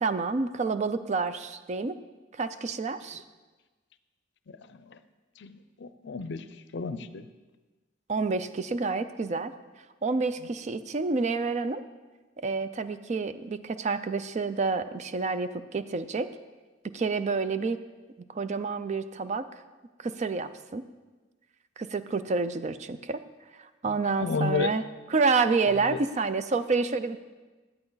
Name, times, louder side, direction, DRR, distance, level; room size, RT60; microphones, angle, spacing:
voice 1, 0.0-2.0 2.3-3.2 8.1-9.5 10.0-11.8 12.4-16.3 16.8-17.8 18.3-19.5 20.0-20.8 21.8-23.2 23.5-24.8 25.1-27.2, right 4 dB, 40° right, 12 dB, 0.4 m, -28 dB
voice 2, 5.4-6.4 6.7-7.3 23.9-24.7 25.9-26.0, left 4 dB, 65° left, 12 dB, 0.5 m, -32 dB
11.0 x 8.8 x 4.0 m, 1.2 s
head